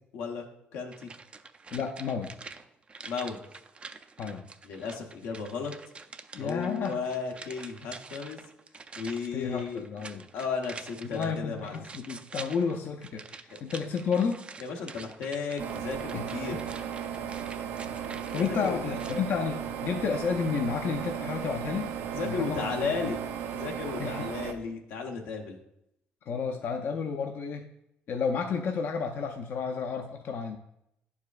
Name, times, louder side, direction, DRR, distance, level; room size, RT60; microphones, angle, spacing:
voice 1, 0.1-0.5 0.7-1.1 3.1-3.4 4.6-5.7 6.4-8.4 9.0-9.8 10.3-11.8 13.5-13.6 14.6-16.6 18.5-19.1 22.1-23.2 23.5-25.6, left 5 dB, 90° left, 2 dB, 0.9 m, -34 dB
sound 1, 0.9-19.3 19.6-19.7, right 4 dB, 30° right, 0.4 m, -47 dB
voice 2, 1.7-2.3 4.2-4.5 6.3-7.0 9.3-10.3 11.0-14.4 16.1-16.3 18.3-21.9 22.2-23.1 24.0-24.3 26.3-27.7 28.1-30.6, left 6 dB, 60° left, 3 dB, 0.5 m, -31 dB
sound 2, 15.6-24.5, right 8 dB, 80° right, 0.6 m, -35 dB
10.5 x 4.8 x 2.4 m, 0.81 s
cardioid pair, 90°, 4 cm